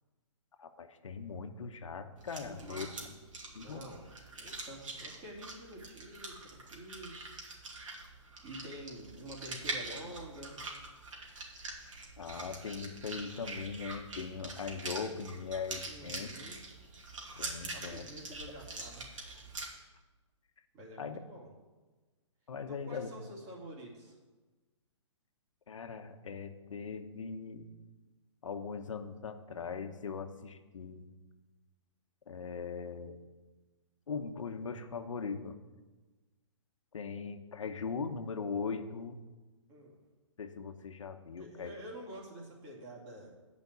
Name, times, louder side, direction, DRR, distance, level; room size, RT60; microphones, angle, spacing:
voice 1, 0.6-2.9 3.5-3.8 12.2-16.3 17.4-18.1 21.0-21.2 22.5-23.1 25.7-27.7 28.4-31.0 32.3-33.2 34.1-35.6 36.9-39.2 40.4-41.8, left 5 dB, 80° left, 8 dB, 1.1 m, -40 dB
sound 1, 2.2-19.7, right 2 dB, 90° right, 2.7 m, -44 dB
voice 2, 2.4-3.1 3.5-7.2 8.4-10.6 15.8-16.6 17.6-19.1 20.7-21.5 22.7-24.2 39.7-40.0 41.4-43.3, right 1 dB, 25° right, -3 dB, 2.6 m, -48 dB
9.8 x 5.2 x 8.2 m, 1.2 s
hypercardioid pair, 155°, 16 cm